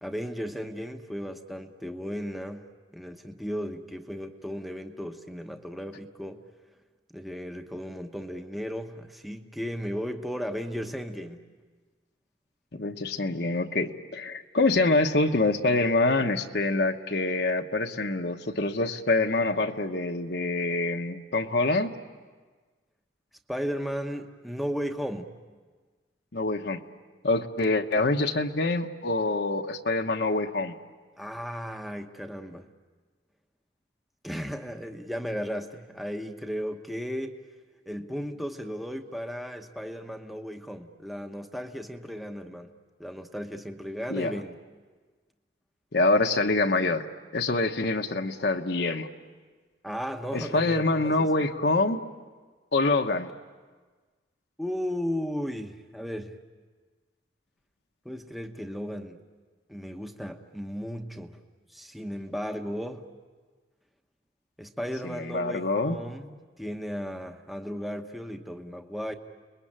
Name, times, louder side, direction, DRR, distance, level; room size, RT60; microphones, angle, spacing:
voice 1, 0.0-6.4 7.1-11.5 23.5-25.3 31.2-32.7 34.2-37.4 37.9-44.6 49.8-51.4 54.6-56.4 58.0-59.2 59.7-61.4 61.7-63.0 64.6-69.1, equal, ahead, 5 dB, 1.0 m, -35 dB
voice 2, 12.7-21.9 26.3-26.8 27.2-30.8 44.1-44.4 45.9-47.0 47.3-49.1 50.3-52.0 52.7-53.3 65.0-66.0, left 2 dB, 60° left, 4 dB, 1.1 m, -25 dB
30.0 x 21.5 x 8.9 m, 1.4 s
head